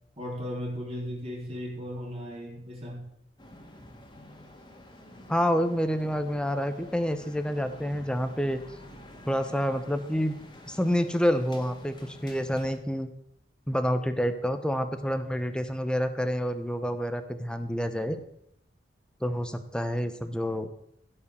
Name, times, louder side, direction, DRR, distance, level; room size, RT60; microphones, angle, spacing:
voice 1, 0.2-3.0, equal, 35° right, -3 dB, 3.3 m, -36 dB
sound 1, 3.4-12.8, left 1 dB, 25° left, 2.0 m, -49 dB
voice 2, 5.3-8.6 9.3-10.4 10.7-13.1 13.7-18.2 19.2-20.7, equal, 5° left, 9 dB, 0.9 m, -28 dB
16.0 x 5.5 x 6.8 m, 0.73 s
head